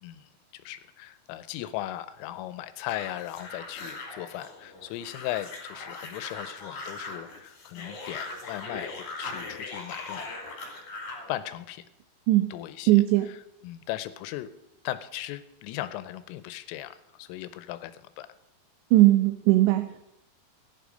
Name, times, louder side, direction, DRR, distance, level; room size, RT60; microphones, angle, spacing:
voice 1, 0.0-10.3 11.3-11.9 12.5-13.4 13.6-14.5 14.8-18.3, left 14 dB, 85° left, 13 dB, 3.2 m, -37 dB
sound 1, 2.9-11.3, left 3 dB, 45° left, 3.3 m, -40 dB
voice 2, 12.9-13.3 18.9-20.0, right 16 dB, 90° right, 9 dB, 2.5 m, -19 dB
16.0 x 10.5 x 5.2 m, 0.88 s
omnidirectional pair, 6.0 m